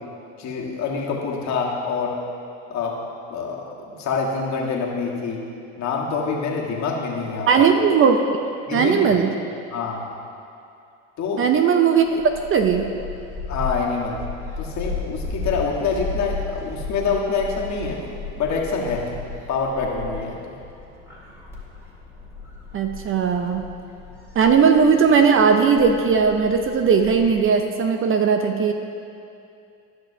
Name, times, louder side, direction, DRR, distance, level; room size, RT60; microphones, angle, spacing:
voice 1, 0.4-2.1 2.7-3.0 3.3-5.4 5.8-7.7 8.7-9.1 9.7-10.0 11.2-11.5 13.5-14.2 14.6-18.0 18.4-19.0 19.5-20.5, left 4 dB, 50° left, -2 dB, 1.5 m, -26 dB
voice 2, 7.5-8.2 8.7-9.3 11.4-12.9 22.7-23.7 24.4-28.7, right 6 dB, 35° right, 6 dB, 0.5 m, -18 dB
Gull seagull, 12.0-27.4, left 4 dB, 5° right, 1.9 m, -35 dB
13.5 x 6.0 x 2.7 m, 2.5 s
supercardioid pair, 90°, 37 cm